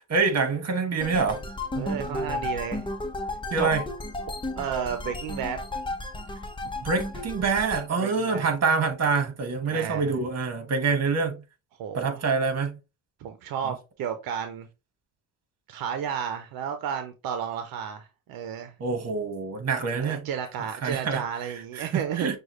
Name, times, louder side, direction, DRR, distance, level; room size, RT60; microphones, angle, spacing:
voice 1, 0.0-1.4 1.7-2.4 3.5-3.8 6.8-11.4 11.9-12.8 18.8-20.3 20.8-22.4, right 4 dB, 45° right, 1.4 m, -26 dB
sound 1, 1.0-7.9, left 2 dB, 15° left, 0.9 m, -33 dB
voice 2, 1.7-2.8 3.6-3.7 4.6-5.6 8.0-8.5 9.7-10.1 11.8-12.2 13.2-14.7 15.7-18.7 20.0-22.3, right 8 dB, 80° right, 0.7 m, -32 dB
6.2 x 2.3 x 3.0 m
supercardioid pair, 70°, 35 cm